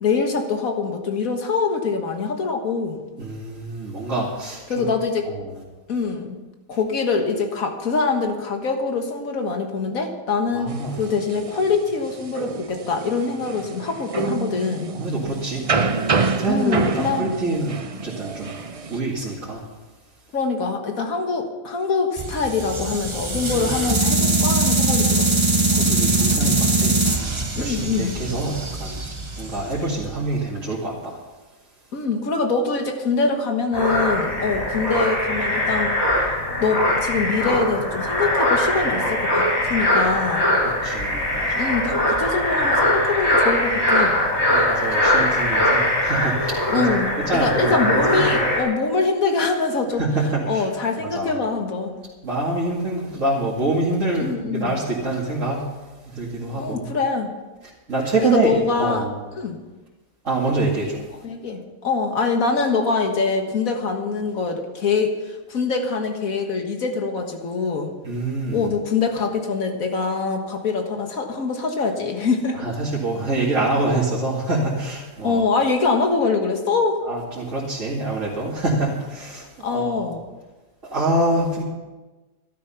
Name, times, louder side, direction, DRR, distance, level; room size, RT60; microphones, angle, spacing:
voice 1, 0.0-3.0 4.7-5.3 5.9-6.4 6.7-14.9 16.5-17.3 20.3-25.3 27.6-28.1 31.9-36.0 36.6-40.5 41.6-44.2 46.7-50.0 50.5-51.9 54.2-54.8 56.5-57.3 58.2-59.1 59.4-59.6 61.2-67.9 68.5-72.7 75.2-77.0 79.6-80.2, left 4 dB, 75° left, 4 dB, 2.0 m, -24 dB
voice 2, 3.2-4.9 5.2-5.5 10.5-10.9 14.9-15.7 16.4-18.6 18.9-19.6 25.7-29.0 29.3-31.2 40.8-41.7 44.5-48.4 50.0-50.6 51.0-51.4 52.2-55.8 56.0-56.9 57.9-59.1 60.2-61.1 68.0-68.7 72.6-75.4 77.1-80.0 80.9-81.6, right 2 dB, 60° right, -7 dB, 2.7 m, -25 dB
sound 1, 10.7-19.0, right 4 dB, 40° right, 0.5 m, -27 dB
sound 2, 22.2-30.3, right 2 dB, 25° right, 1.1 m, -22 dB
sound 3, 33.7-48.6, left 1 dB, 25° left, 4.8 m, -21 dB
13.5 x 12.0 x 5.7 m, 1.2 s
omnidirectional pair, 1.5 m